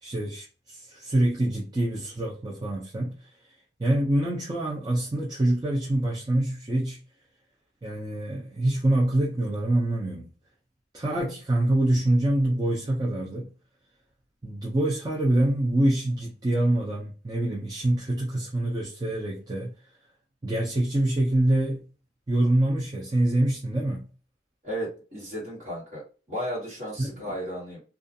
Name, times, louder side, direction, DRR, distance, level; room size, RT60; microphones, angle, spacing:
voice 1, 0.0-3.1 3.8-7.0 7.8-10.3 10.9-13.5 14.4-19.7 20.4-21.8 22.3-24.1 27.0-27.3, right 1 dB, 20° right, 0.4 m, -25 dB
voice 2, 24.6-26.0 26.3-27.8, equal, 40° right, 1.5 m, -34 dB
2.4 x 2.3 x 2.6 m
head